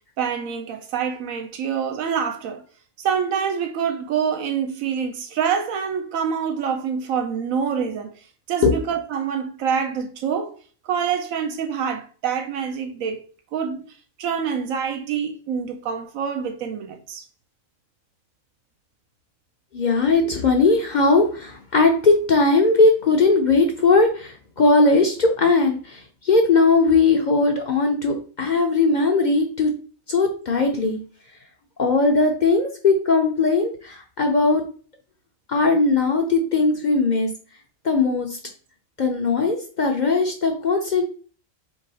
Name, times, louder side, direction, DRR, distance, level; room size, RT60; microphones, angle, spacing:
voice 1, 0.2-2.6 3.0-8.1 8.5-10.5 10.9-13.2 13.5-13.8 14.2-17.2, right 7 dB, 90° right, 1.1 m, -26 dB
voice 2, 19.7-29.7 30.1-31.0 31.8-34.6 35.5-37.3 37.8-38.4 39.0-41.0, left 3 dB, 50° left, 0.5 m, -19 dB
3.7 x 3.1 x 4.0 m
omnidirectional pair, 1.4 m